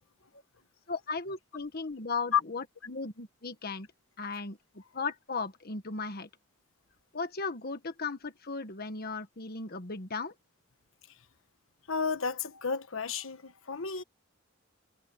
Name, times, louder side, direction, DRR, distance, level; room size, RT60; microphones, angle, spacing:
voice 1, 0.9-3.9 4.2-4.6 4.9-6.3 7.1-10.3, left 4 dB, 50° left, 1.4 m, -36 dB
voice 2, 11.9-14.0, left 6 dB, 90° left, 1.3 m, -31 dB
head